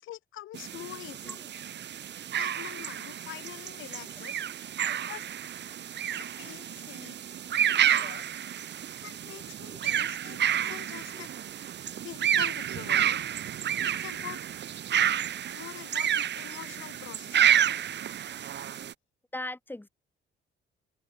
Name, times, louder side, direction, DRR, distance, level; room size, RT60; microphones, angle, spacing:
voice 1, 0.0-1.4 2.4-4.4 5.1-5.2 6.2-7.2 7.6-8.3 9.0-11.3 12.0-13.2 14.0-14.4 15.5-17.6, left 14 dB, 85° left, 5.8 m, -45 dB
sound 1, 0.5-18.9, right 10 dB, 60° right, 2.0 m, -30 dB
voice 2, 19.3-19.9, left 1 dB, 10° left, 6.2 m, -39 dB
cardioid pair, 90°, 20 cm